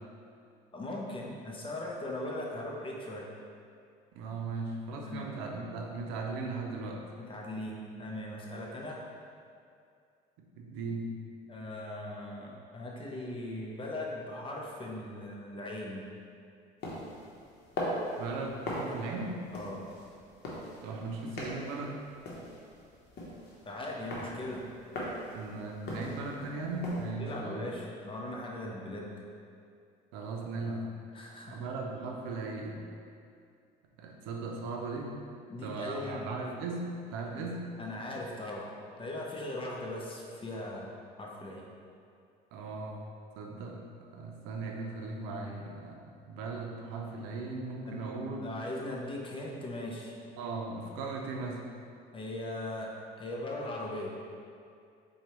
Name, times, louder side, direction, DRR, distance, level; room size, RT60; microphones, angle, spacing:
voice 1, 0.7-3.3 5.1-5.3 7.2-9.0 11.5-16.0 19.5-19.9 23.6-24.6 27.2-29.1 31.1-31.7 35.5-36.3 37.8-41.7 47.9-48.0 48.4-50.1 52.1-52.9 53.2-54.1, left 1 dB, 25° left, -2 dB, 0.6 m, -39 dB
voice 2, 4.1-7.1 10.4-11.2 18.2-19.4 20.8-22.0 25.3-27.7 30.1-31.0 31.4-32.8 34.0-35.2 35.6-37.7 42.5-43.1 43.4-48.5 50.4-51.7, right 3 dB, 85° right, 1 dB, 0.5 m, -38 dB
sound 1, 16.8-27.1, left 1 dB, 60° left, 0.9 m, -40 dB
4.4 x 2.3 x 2.9 m, 2.4 s
supercardioid pair, 85°, 19 cm